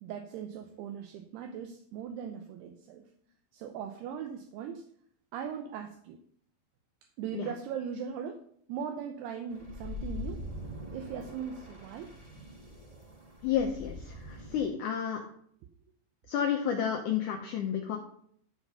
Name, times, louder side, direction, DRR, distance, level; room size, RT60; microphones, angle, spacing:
voice 1, 0.0-3.0 3.5-4.9 5.3-6.2 7.2-10.4 10.9-12.1, right 7 dB, 80° right, 5 dB, 2.7 m, -39 dB
sound 1, 9.5-14.7, left 2 dB, 35° right, 0.5 m, -43 dB
voice 2, 13.4-15.2 16.3-18.0, left 8 dB, 85° left, 3 dB, 1.7 m, -31 dB
12.5 x 4.9 x 5.5 m, 0.63 s
omnidirectional pair, 4.9 m